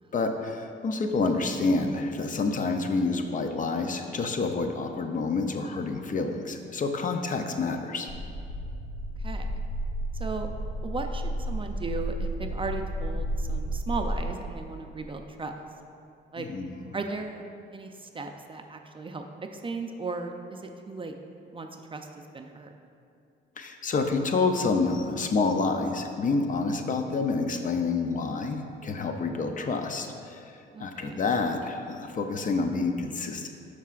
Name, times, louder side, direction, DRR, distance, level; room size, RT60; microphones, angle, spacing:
voice 1, 0.1-8.1 16.4-16.9 23.6-30.5 30.8-33.5, left 3 dB, 40° left, 5 dB, 0.6 m, -28 dB
sound 1, 8.1-14.2, right 1 dB, 75° left, 1.2 m, -32 dB
voice 2, 10.8-15.5 16.3-16.5 16.9-17.4 17.7-19.2 19.5-21.1 21.5-22.0 22.3-22.7 30.7-31.2, right 3 dB, 25° right, 5 dB, 0.5 m, -36 dB
11.0 x 4.7 x 2.5 m, 2.6 s
cardioid pair, 90°, 20 cm